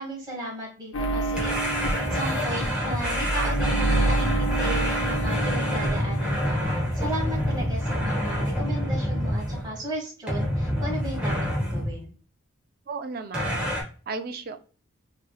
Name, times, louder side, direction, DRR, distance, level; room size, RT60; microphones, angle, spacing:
voice 1, 0.0-12.1, right 1 dB, 20° right, -4 dB, 1.3 m, -35 dB
sound 1, 0.9-6.7 6.9-8.1, right 2 dB, 75° left, 0.6 m, -29 dB
sound 2, 1.4-9.8 10.3-12.0 13.3-13.8, equal, 5° right, 0.9 m, -27 dB
voice 2, 12.9-13.8 14.1-14.6, right 4 dB, 45° right, 8 dB, 0.4 m, -34 dB
4.3 x 3.1 x 2.2 m, 0.39 s
head